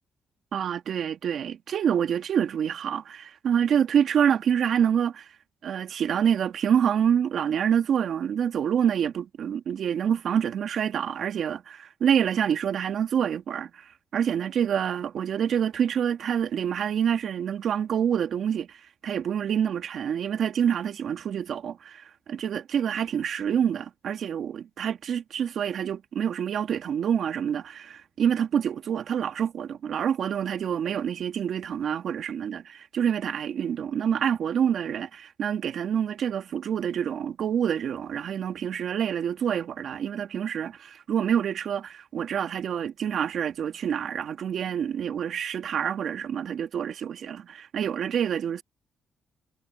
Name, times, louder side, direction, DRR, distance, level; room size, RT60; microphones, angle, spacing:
voice 1, 0.5-5.3 5.6-48.6, right 8 dB, 65° right, 2.4 m, -27 dB
cardioid pair, 90°, 0 cm